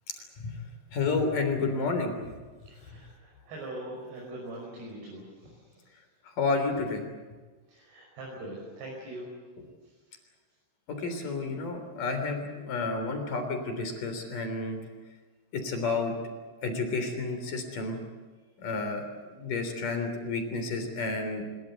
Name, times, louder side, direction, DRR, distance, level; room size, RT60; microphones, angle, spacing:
voice 1, 0.9-2.1 6.4-7.0 10.9-14.8 15.5-16.1 16.6-18.0 18.6-19.0 19.4-21.4, left 3 dB, 50° left, 6 dB, 4.8 m, -30 dB
voice 2, 2.6-5.9 7.7-9.3 9.8-9.9, right 1 dB, 60° right, -3 dB, 7.6 m, -42 dB
24.0 x 22.0 x 8.0 m, 1.4 s
omnidirectional pair, 5.3 m